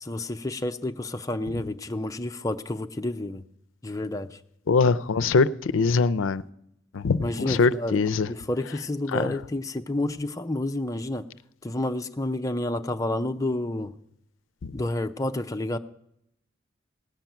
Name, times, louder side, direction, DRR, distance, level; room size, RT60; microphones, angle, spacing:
voice 1, 0.0-3.4 3.8-4.4 7.2-8.0 8.3-11.2 11.6-13.9 14.7-15.8, left 1 dB, 15° left, 6 dB, 0.5 m, -30 dB
voice 2, 4.7-6.4 6.9-8.3 9.1-9.3 14.6-14.7, left 4 dB, 90° left, 15 dB, 0.5 m, -23 dB
16.5 x 5.8 x 9.1 m, 0.77 s
head